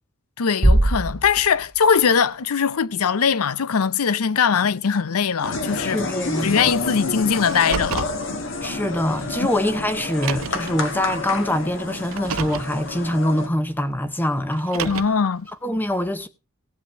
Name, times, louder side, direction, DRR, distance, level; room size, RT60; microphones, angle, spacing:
voice 1, 0.4-6.0 6.4-8.1 14.9-15.5, left 6 dB, 90° left, 0.6 m, -21 dB
Bass drum, 0.6-2.3, right 1 dB, 25° right, 0.7 m, -21 dB
sound 1, 5.4-13.5, left 3 dB, 60° left, 1.7 m, -29 dB
voice 2, 5.8-6.7 8.6-15.2 15.6-16.3, left 1 dB, 10° left, 0.7 m, -24 dB
Car, 7.5-8.2 9.3-9.4 10.1-10.7 12.0-12.7 14.5-15.3, right 6 dB, 75° right, 0.6 m, -29 dB
17.0 x 7.3 x 4.4 m
head